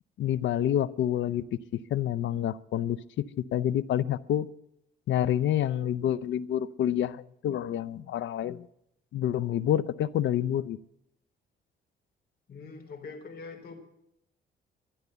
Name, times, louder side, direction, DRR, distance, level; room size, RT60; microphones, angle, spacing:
voice 1, 0.2-4.5 5.1-8.7 9.1-10.8, left 11 dB, 70° left, 18 dB, 0.6 m, -28 dB
voice 2, 12.5-13.7, left 4 dB, 50° left, 4 dB, 3.6 m, -43 dB
12.5 x 11.5 x 8.0 m, 0.78 s
cardioid pair, 90°, 20 cm